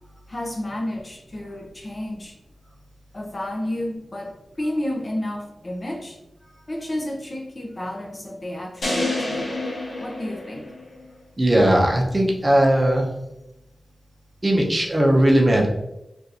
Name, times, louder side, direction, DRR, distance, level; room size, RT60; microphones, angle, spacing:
voice 1, 0.3-2.3 3.1-6.2 6.7-9.5 10.0-10.7, left 1 dB, 35° left, 0 dB, 0.7 m, -31 dB
sound 1, 8.8-11.1, left 2 dB, 70° left, 0.9 m, -28 dB
voice 2, 11.4-13.1 14.4-15.7, right 1 dB, 25° right, -1 dB, 0.7 m, -18 dB
3.6 x 2.5 x 2.8 m, 0.91 s
wide cardioid pair, 80°, 0 cm